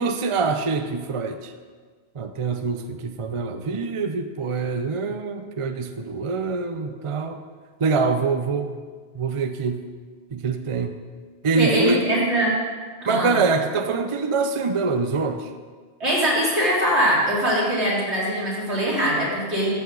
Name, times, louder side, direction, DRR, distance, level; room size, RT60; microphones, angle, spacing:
voice 1, 0.0-1.5 2.1-7.4 7.8-8.8 9.1-9.8 10.3-11.0 11.4-12.0 13.1-15.5, right 4 dB, 40° right, 7 dB, 0.5 m, -24 dB
voice 2, 11.5-12.5 13.0-13.4 16.0-19.7, right 1 dB, 80° right, -6 dB, 3.3 m, -22 dB
13.0 x 8.3 x 3.9 m, 1.5 s
omnidirectional pair, 1.1 m